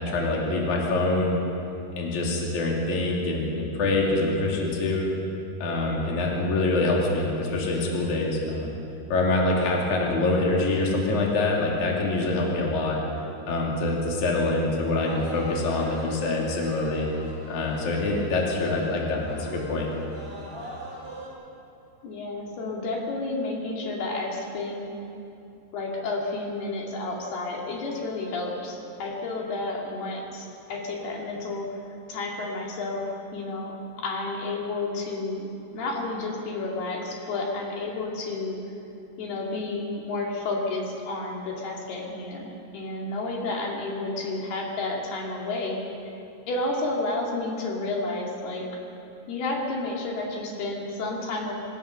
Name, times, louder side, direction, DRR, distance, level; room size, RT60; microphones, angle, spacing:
voice 1, 0.0-1.4 2.0-5.1 5.6-8.7 9.1-13.0 13.5-17.1 17.5-19.9, left 2 dB, 50° left, -2 dB, 3.9 m, -25 dB
sound 1, 15.0-21.3, right 1 dB, 15° right, 5.3 m, -41 dB
voice 2, 22.0-24.9 25.7-31.7 32.1-35.5 35.7-38.6 39.2-42.5 42.7-46.2 46.5-48.7 49.3-51.5, left 2 dB, 70° left, -1 dB, 4.4 m, -31 dB
26.0 x 15.5 x 6.6 m, 2.8 s
omnidirectional pair, 4.9 m